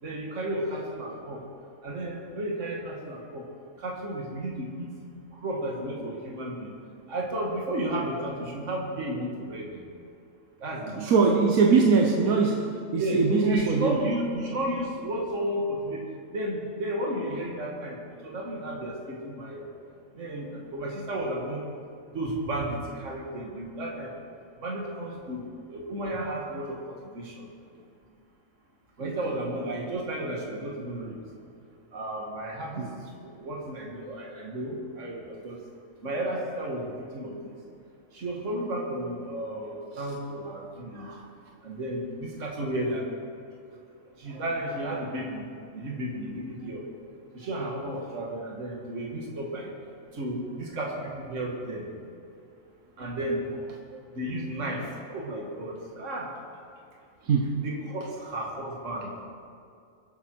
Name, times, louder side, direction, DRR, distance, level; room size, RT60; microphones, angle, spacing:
voice 1, 0.0-1.4 1.8-3.5 3.8-5.0 5.3-6.7 7.1-9.8 10.6-11.1 13.0-16.1 16.3-19.7 20.2-21.7 22.1-24.1 24.6-27.5 29.0-31.2 31.9-35.6 36.0-37.6 38.1-41.1 41.6-43.1 44.2-46.9 47.3-49.7 50.1-51.9 53.0-53.6 54.1-56.3 57.6-59.2, right 1 dB, 60° right, -2 dB, 2.2 m, -33 dB
voice 2, 10.9-14.0 29.0-29.1 32.8-32.9 40.9-41.3 44.3-44.4 57.3-57.6, right 4 dB, 85° right, 1 dB, 1.5 m, -23 dB
23.0 x 8.8 x 4.6 m, 2.4 s
omnidirectional pair, 1.4 m